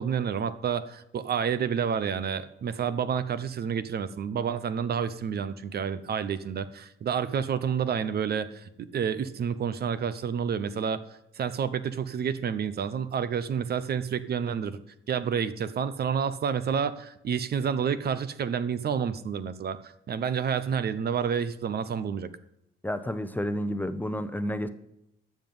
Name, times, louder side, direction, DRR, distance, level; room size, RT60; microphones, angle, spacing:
voice 1, 0.0-11.0 11.4-14.8 15.1-22.3, right 7 dB, 55° right, 13 dB, 0.8 m, -29 dB
voice 2, 22.8-24.7, equal, 10° left, 11 dB, 0.8 m, -30 dB
13.0 x 7.4 x 5.5 m, 0.84 s
cardioid pair, 90°, 20 cm